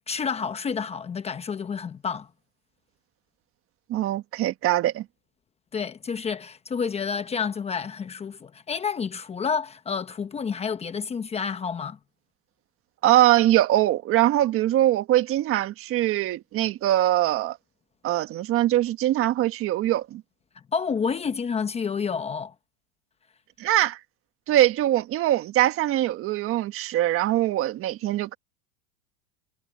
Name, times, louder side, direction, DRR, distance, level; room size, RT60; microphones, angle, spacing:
voice 1, 0.1-2.3 5.7-12.0 20.7-22.5, left 6 dB, 15° left, 1.0 m, -29 dB
voice 2, 3.9-5.0 13.0-17.6 18.0-20.2 23.6-24.0 24.5-28.4, right 14 dB, 35° right, 1.4 m, -22 dB
supercardioid pair, 135°, 38 cm